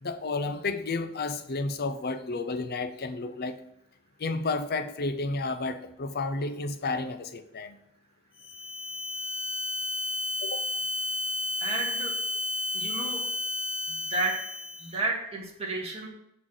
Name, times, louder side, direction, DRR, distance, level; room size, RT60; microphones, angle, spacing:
voice 1, 0.0-3.6 4.2-7.8 10.4-10.7, left 3 dB, 50° left, 10 dB, 0.7 m, -31 dB
sound 1, 8.4-15.0, left 2 dB, 25° left, 1.1 m, -32 dB
voice 2, 11.6-12.1 12.7-13.2 13.9-14.4 14.8-16.1, right 2 dB, 30° right, -3 dB, 2.0 m, -31 dB
6.1 x 5.7 x 6.4 m, 0.80 s
head